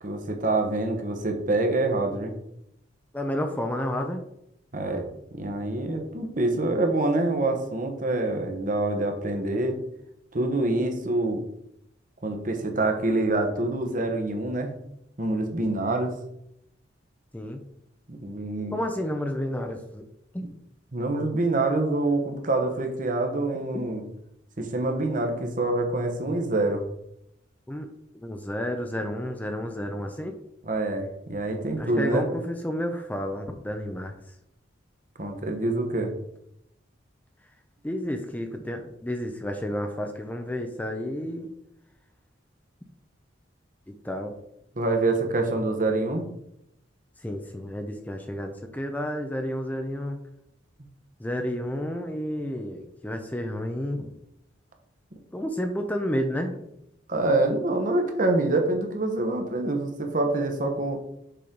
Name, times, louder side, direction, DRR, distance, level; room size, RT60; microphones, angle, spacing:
voice 1, 0.0-2.3 4.7-5.0 5.3-9.8 10.3-11.4 12.2-14.7 15.2-16.1 18.1-18.7 20.9-24.0 24.6-26.8 30.6-32.2 35.2-36.1 44.8-46.2 57.1-61.0, right 2 dB, 45° right, 4 dB, 1.1 m, -26 dB
voice 2, 3.1-4.2 17.3-17.6 18.7-20.0 20.3-20.6 27.7-27.9 28.2-30.4 31.8-34.1 37.8-41.5 44.0-44.3 47.2-50.2 51.2-54.1 55.3-56.6, equal, 10° left, 4 dB, 0.5 m, -31 dB
6.8 x 5.1 x 3.9 m, 0.78 s
head